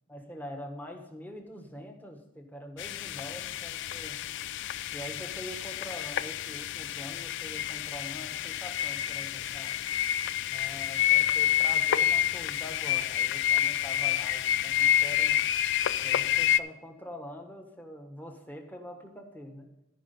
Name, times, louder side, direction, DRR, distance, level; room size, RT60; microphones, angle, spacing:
voice 1, 0.1-4.2 4.9-9.7 10.5-15.4 16.0-19.7, equal, 10° left, 3 dB, 1.3 m, -44 dB
sound 1, 2.8-16.6, left 11 dB, 60° left, 0.3 m, -28 dB
14.0 x 5.1 x 5.3 m, 0.95 s
head